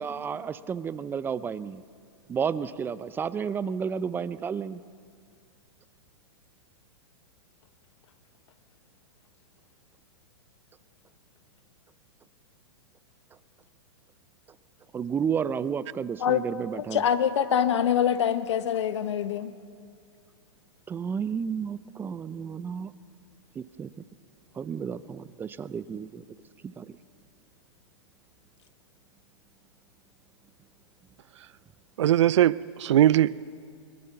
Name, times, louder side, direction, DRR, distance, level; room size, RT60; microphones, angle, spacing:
voice 1, 0.0-1.8 2.3-4.8 14.9-17.0 20.9-22.9 23.6-23.9 24.6-26.4 26.6-26.9, right 7 dB, 15° right, 0.5 m, -32 dB
voice 2, 16.9-19.5, left 9 dB, 75° left, 1.3 m, -24 dB
voice 3, 32.0-33.4, right 12 dB, 75° right, 0.5 m, -20 dB
21.5 x 21.0 x 6.9 m
hypercardioid pair, 135°, 15 cm